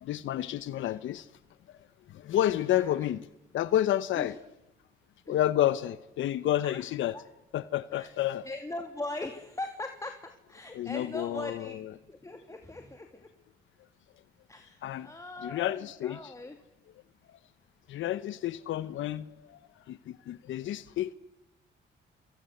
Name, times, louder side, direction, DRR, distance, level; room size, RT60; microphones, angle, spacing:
voice 1, 0.0-1.3 2.2-3.2 3.5-4.3 5.3-7.2 7.5-8.4 10.7-11.9 14.8-15.1 15.4-16.3 17.9-19.2 19.5-19.6 19.9-20.0 20.3-21.1, left 12 dB, 80° left, 0.9 m, -30 dB
voice 2, 2.5-3.0 4.1-4.4 5.3-5.4 6.6-6.8 7.1-7.2 7.9-8.1 8.4-11.8 12.1-13.3 14.5-16.6, left 2 dB, 15° left, 2.7 m, -40 dB
27.5 x 25.5 x 7.9 m
cardioid pair, 90°, 20 cm